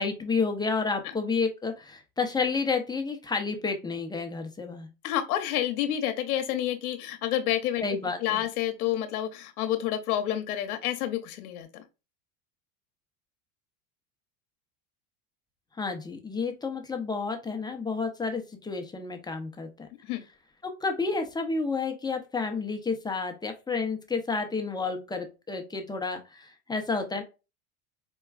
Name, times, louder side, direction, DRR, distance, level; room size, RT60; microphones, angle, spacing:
voice 1, 0.0-4.9 7.8-8.4 15.8-19.9 20.8-27.2, left 4 dB, 10° left, 0.6 m, -30 dB
voice 2, 5.0-7.8 8.2-11.8 20.0-20.2, left 12 dB, 85° left, 0.8 m, -29 dB
4.4 x 2.3 x 2.3 m
supercardioid pair, 105°, 43 cm